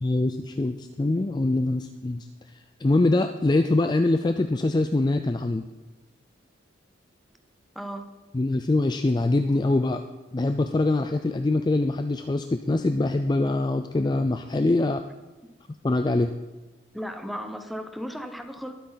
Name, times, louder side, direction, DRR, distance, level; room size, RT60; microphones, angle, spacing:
voice 1, 0.0-2.3 2.8-5.7 8.3-10.0 10.3-15.0 15.8-16.3, left 2 dB, 20° left, 7 dB, 0.3 m, -23 dB
voice 2, 7.7-8.1 16.9-18.7, equal, ahead, 7 dB, 0.7 m, -35 dB
20.5 x 8.4 x 4.0 m, 1.2 s
head